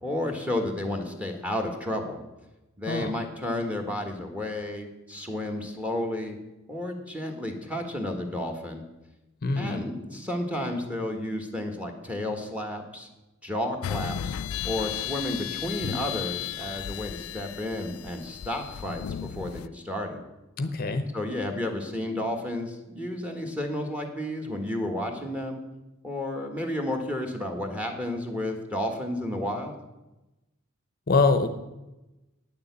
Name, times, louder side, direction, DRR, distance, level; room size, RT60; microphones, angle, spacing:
voice 1, 0.0-2.2 2.8-6.4 6.7-8.8 9.5-13.1 13.4-14.3 14.6-20.2 21.1-25.6 26.0-29.7, left 1 dB, 5° right, 4 dB, 1.5 m, -32 dB
voice 2, 9.4-9.8 20.6-21.1 31.1-31.5, left 3 dB, 45° left, 9 dB, 0.7 m, -24 dB
sound 1, 13.8-19.7, left 10 dB, 80° left, 0.3 m, -34 dB
9.4 x 6.8 x 8.1 m, 1.0 s
head